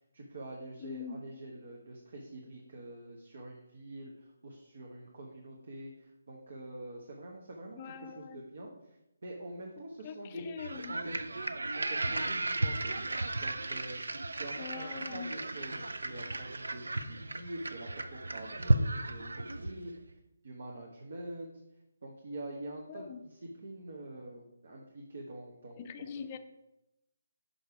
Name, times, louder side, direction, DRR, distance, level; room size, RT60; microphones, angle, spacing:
voice 1, 0.1-8.7 9.2-10.6 10.9-11.1 11.7-13.0 13.4-14.0 14.3-19.9 20.4-21.5 22.0-26.1, right 1 dB, 60° right, 0 dB, 1.1 m, -45 dB
voice 2, 0.8-1.2 7.8-8.4 10.0-11.0 14.6-15.3 22.9-23.2 25.8-26.4, left 6 dB, 25° left, 8 dB, 0.5 m, -43 dB
sound 1, 10.6-19.9, right 2 dB, 90° right, 0.5 m, -34 dB
5.6 x 5.3 x 4.8 m, 0.90 s
hypercardioid pair, 165°, 0 cm